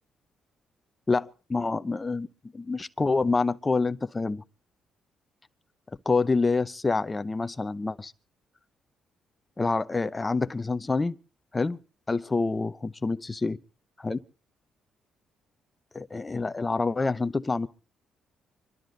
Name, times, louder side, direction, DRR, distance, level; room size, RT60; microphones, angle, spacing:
voice 1, 1.1-2.3 2.5-4.4 6.1-8.1 9.6-11.2 11.5-11.8 12.1-13.6 14.0-14.2 15.9-17.7, left 3 dB, 20° left, 0.8 m, -27 dB
25.0 x 12.5 x 3.9 m
cardioid pair, 90°, 0 cm